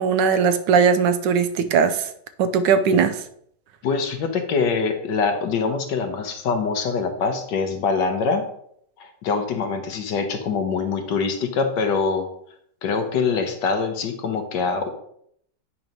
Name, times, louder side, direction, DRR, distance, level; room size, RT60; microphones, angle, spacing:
voice 1, 0.0-2.1 2.4-3.2, right 6 dB, 80° right, 11 dB, 1.2 m, -19 dB
voice 2, 3.8-8.5 9.0-12.3 12.8-14.9, left 5 dB, 75° left, 6 dB, 1.5 m, -24 dB
8.6 x 3.0 x 5.2 m, 0.68 s
omnidirectional pair, 1.9 m